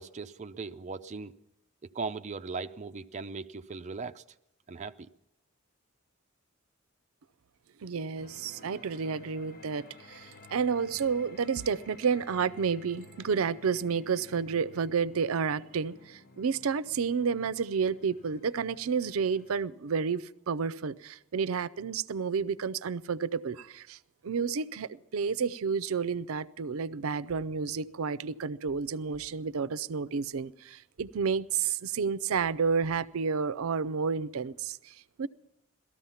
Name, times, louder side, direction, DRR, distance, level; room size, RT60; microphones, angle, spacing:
voice 1, 0.0-1.3 1.9-4.2 4.7-5.1, right 4 dB, 35° right, 0.5 m, -38 dB
voice 2, 7.8-24.0 24.2-35.3, right 6 dB, 90° right, 0.5 m, -30 dB
sound 1, 8.2-19.6, left 2 dB, 45° left, 1.1 m, -54 dB
sound 2, 27.9-28.3 28.7-30.1 31.0-32.0 32.4-33.8 34.2-34.6, right 1 dB, 10° right, 3.8 m, -63 dB
18.0 x 13.5 x 5.7 m
head